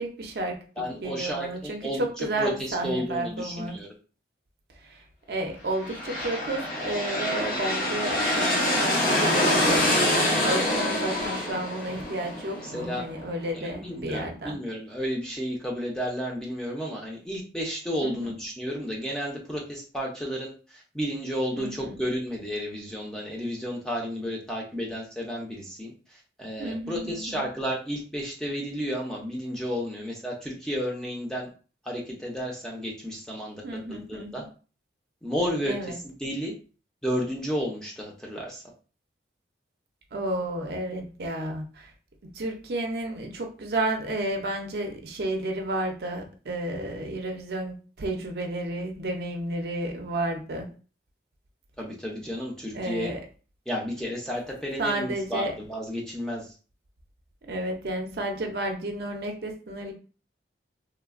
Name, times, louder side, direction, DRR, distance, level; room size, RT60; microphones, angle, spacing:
voice 1, 0.0-3.8 4.8-14.6 18.0-18.4 21.5-22.0 26.6-27.5 33.6-34.5 35.6-36.0 40.1-41.9 42.2-50.7 52.7-53.2 54.8-55.5 57.5-59.9, right 1 dB, 60° right, 2 dB, 0.5 m, -32 dB
voice 2, 0.8-3.9 12.6-13.0 13.5-31.5 31.8-33.6 33.9-34.4 35.2-35.9 36.2-36.5 37.0-38.6 51.8-53.1 53.7-56.5, equal, 5° left, -3 dB, 0.5 m, -32 dB
sound 1, 5.7-13.4, left 1 dB, 50° left, 0.7 m, -26 dB
3.1 x 2.1 x 2.4 m, 0.37 s
head